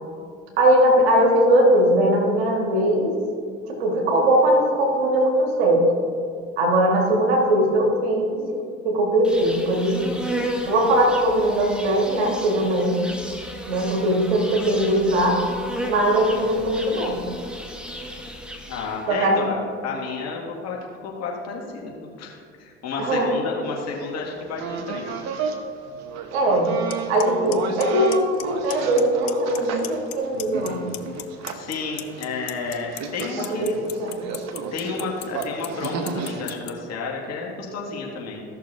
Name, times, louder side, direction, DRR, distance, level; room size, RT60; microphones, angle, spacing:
voice 1, 0.6-3.1 3.7-5.9 6.6-10.1 10.7-13.0 13.7-15.4 15.8-17.2 19.1-19.5 23.0-23.3 26.3-26.7 27.1-30.8 33.4-34.2, right 1 dB, 80° right, 0 dB, 1.9 m, -20 dB
Insect, 9.2-19.1, equal, 5° right, 1.2 m, -34 dB
voice 2, 16.3-16.8 18.7-19.6 19.8-25.1 25.3-25.4 31.5-33.8 34.7-38.4, left 4 dB, 55° left, -2 dB, 2.2 m, -31 dB
sound 1, 23.6-25.6 25.9-36.5, right 6 dB, 60° right, 1.0 m, -33 dB
Clock, 26.9-27.0 27.2-27.5 27.8-28.4 28.7-29.0 29.3-30.1 30.4-36.7, left 18 dB, 75° left, 0.6 m, -33 dB
15.5 x 6.5 x 2.7 m, 2.2 s
hypercardioid pair, 65°, 31 cm